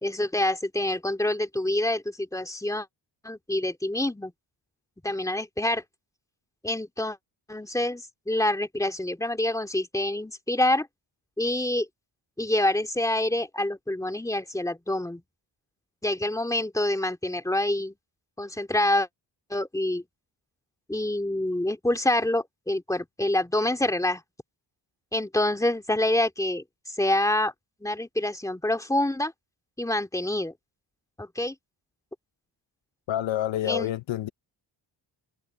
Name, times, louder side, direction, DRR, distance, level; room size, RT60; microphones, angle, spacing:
voice 1, 0.0-2.9 3.2-4.3 5.0-5.8 6.6-7.2 7.5-10.9 11.4-11.9 12.4-15.2 16.0-17.9 18.4-19.1 19.5-20.0 20.9-24.2 25.1-27.5 27.8-29.3 29.8-30.5 31.2-31.6 33.7-33.9, left 1 dB, 5° left, 2.5 m, -26 dB
voice 2, 33.1-34.3, left 12 dB, 80° left, 0.9 m, -28 dB
wide cardioid pair, 125°, 45 cm